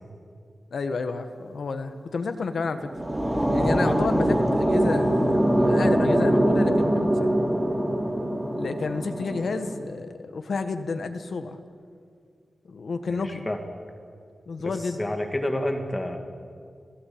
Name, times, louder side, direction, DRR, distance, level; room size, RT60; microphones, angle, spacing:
voice 1, 0.7-2.9 3.5-7.4 8.5-11.6 12.6-13.5 14.5-15.0, left 4 dB, 60° left, 8 dB, 1.6 m, -31 dB
sound 1, 2.6-9.7, right 1 dB, 15° right, 3.2 m, -23 dB
voice 2, 13.1-13.6 14.6-14.7 15.0-16.2, left 1 dB, 15° left, 5 dB, 2.1 m, -29 dB
30.0 x 17.5 x 8.8 m, 2.2 s
wide cardioid pair, 180°, 0 cm